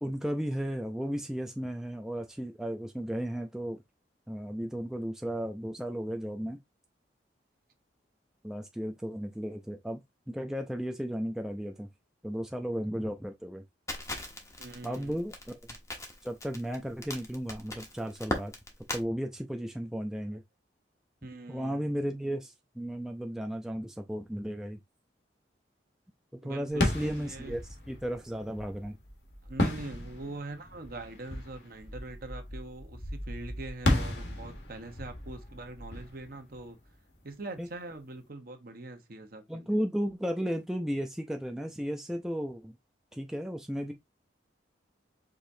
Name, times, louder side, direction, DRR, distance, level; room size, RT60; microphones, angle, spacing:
voice 1, 0.0-3.8 4.3-6.6 8.4-11.9 12.2-13.6 14.8-15.6 16.2-18.5 18.9-20.4 21.5-24.8 26.3-27.6 27.9-29.0 37.6-37.7 39.5-42.8 43.1-43.9, equal, 5° right, 0.4 m, -34 dB
Crackle, 13.9-19.0, left 1 dB, 15° left, 1.1 m, -38 dB
voice 2, 14.6-15.2 21.2-21.9 26.4-27.6 29.4-36.8 37.2-39.7, right 2 dB, 55° right, 1.0 m, -43 dB
sound 1, 26.7-37.3, left 1 dB, 70° left, 1.5 m, -35 dB
5.0 x 3.6 x 2.7 m
head